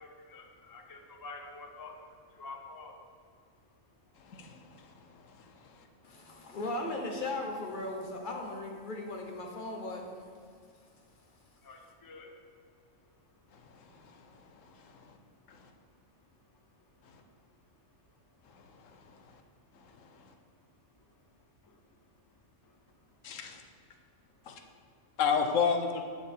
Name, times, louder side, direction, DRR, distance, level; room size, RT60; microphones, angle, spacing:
voice 1, 0.0-6.6 10.5-11.2 11.5-18.0 18.3-19.2 19.9-20.4 20.8-23.4 24.2-25.1, left 3 dB, 25° left, 3 dB, 0.5 m, -54 dB
voice 2, 4.2-4.9 5.2-5.8 13.5-14.2 14.6-15.2 15.5-15.7 18.5-19.2 19.8-20.3 23.2-23.6 24.5-24.6 25.2-26.0, left 6 dB, 80° left, 5 dB, 1.1 m, -34 dB
voice 3, 6.0-10.2, left 2 dB, 40° left, 1 dB, 1.2 m, -37 dB
9.5 x 6.4 x 3.5 m, 2.2 s
omnidirectional pair, 1.3 m